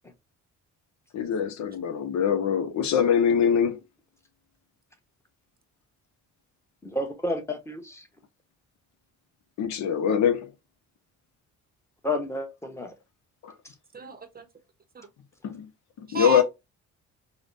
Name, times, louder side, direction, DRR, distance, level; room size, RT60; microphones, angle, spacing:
voice 1, 1.1-3.8 9.6-10.5 13.4-13.5 15.4-15.7 16.0-16.4, left 8 dB, 65° left, 0.7 m, -23 dB
voice 2, 6.8-8.1 12.0-12.9, left 1 dB, 10° left, 1.0 m, -31 dB
voice 3, 13.9-14.4 14.9-15.1 16.1-16.4, right 3 dB, 30° right, 0.7 m, -31 dB
4.9 x 2.2 x 2.5 m
cardioid pair, 90°, 30 cm